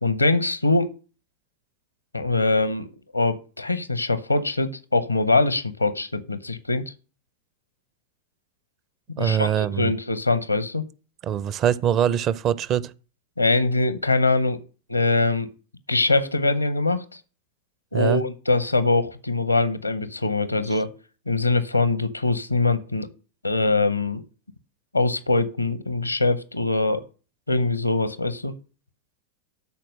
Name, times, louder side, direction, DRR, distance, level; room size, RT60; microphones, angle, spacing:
voice 1, 0.0-0.9 2.1-6.8 9.2-10.8 13.4-14.6 14.9-15.5 15.9-17.2 17.9-20.9 21.3-23.1 23.4-24.2 24.9-27.0 27.5-28.5, left 2 dB, 85° left, 0.8 m, -23 dB
voice 2, 9.2-9.9 11.2-12.9 17.9-18.2, right 9 dB, 35° right, 0.6 m, -23 dB
12.5 x 4.5 x 6.4 m
figure-of-eight pair, 90°, 0 cm